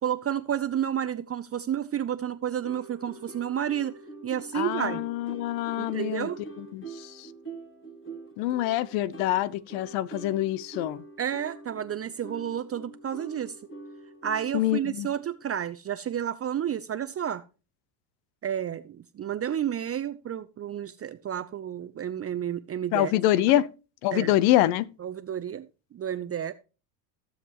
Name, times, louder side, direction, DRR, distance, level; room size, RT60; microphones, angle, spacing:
voice 1, 0.0-3.9 4.2-5.0 5.8-6.4 11.2-13.6 14.2-17.4 18.4-23.1 24.1-24.3 25.0-25.7 25.9-26.5, right 9 dB, 30° right, 0.7 m, -31 dB
sound 1, 2.6-15.5, right 2 dB, 25° left, 3.1 m, -45 dB
voice 2, 4.5-6.3 6.7-7.1 8.4-11.0 14.5-15.1 22.9-23.7 24.0-24.9, left 14 dB, 70° left, 1.0 m, -25 dB
16.0 x 7.4 x 3.0 m
supercardioid pair, 85°, 49 cm